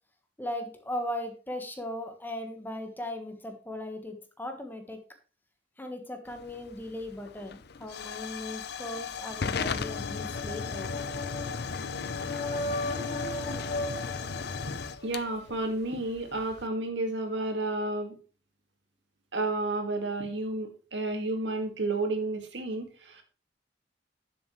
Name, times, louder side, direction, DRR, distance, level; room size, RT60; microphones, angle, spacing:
voice 1, 0.4-5.0 5.8-10.9, left 1 dB, 10° left, 5 dB, 1.4 m, -38 dB
Hiss / Fire / Tick, 6.3-16.7, left 5 dB, 65° left, 0.6 m, -36 dB
sound 1, 9.5-15.3, left 2 dB, 40° left, 3.4 m, -37 dB
voice 2, 15.0-18.2 19.3-23.2, right 2 dB, 85° right, 5 dB, 2.1 m, -31 dB
10.0 x 7.6 x 3.2 m, 0.36 s
head